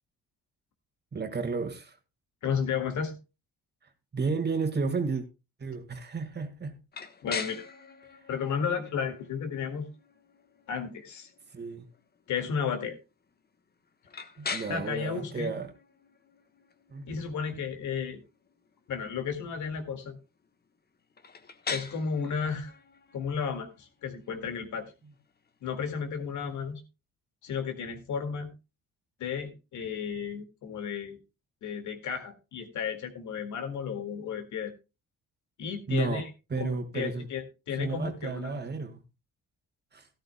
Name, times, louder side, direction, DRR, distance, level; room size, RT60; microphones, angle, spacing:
voice 1, 1.1-2.0 4.1-5.2 5.6-6.8 11.5-11.9 14.4-15.7 16.9-17.1 25.0-25.1 35.9-37.3 37.8-39.0 39.9-40.1, right 4 dB, 35° right, 1.8 m, -32 dB
voice 2, 2.4-3.1 7.2-7.6 8.3-9.9 10.7-11.3 12.3-13.0 14.7-15.5 17.1-18.2 18.9-20.2 21.7-22.7 23.1-24.9 25.6-26.8 27.4-28.5 29.2-31.2 31.6-34.7 35.6-36.3 36.6-38.6, left 6 dB, 75° left, 2.1 m, -33 dB
sound 1, 6.9-26.7, left 5 dB, 30° left, 1.2 m, -44 dB
14.5 x 12.5 x 2.2 m
cardioid pair, 90°, 30 cm